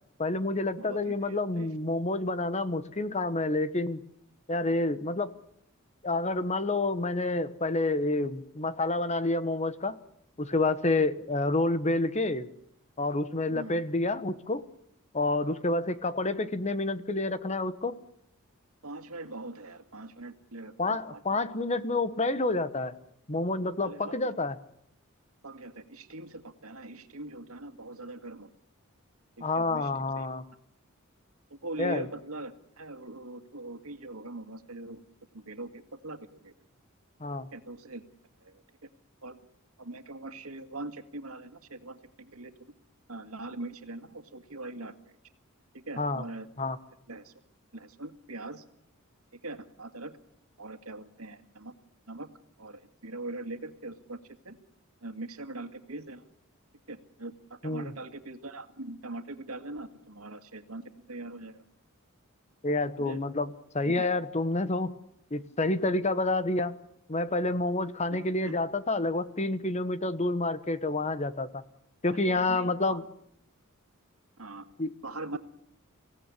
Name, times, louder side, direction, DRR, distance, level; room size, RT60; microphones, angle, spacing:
voice 1, 0.2-4.0 4.5-5.3 6.0-10.0 10.4-12.5 13.0-14.6 15.1-18.0 20.8-22.9 23.3-24.6 29.4-30.4 31.8-32.1 37.2-37.5 46.0-46.2 46.6-46.8 57.6-57.9 62.6-64.9 65.3-66.8 67.1-71.6 72.0-73.0 74.8-74.9, left 2 dB, 30° left, 13 dB, 1.2 m, -29 dB
voice 2, 0.8-1.7 13.5-13.8 18.8-21.2 23.8-24.2 25.4-28.5 29.4-30.3 31.5-35.0 35.3-36.5 37.5-38.0 38.4-38.9 39.2-39.4 39.8-42.5 43.1-45.2 45.7-46.5 47.1-47.3 47.7-48.6 49.3-50.1 50.6-51.7 52.1-52.3 52.6-54.6 55.0-56.2 56.9-61.6 63.0-63.2 68.1-68.6 72.2-73.0 74.4-74.7 75.0-75.4, right 2 dB, 90° right, 8 dB, 2.1 m, -42 dB
25.5 x 16.5 x 9.9 m, 0.74 s
head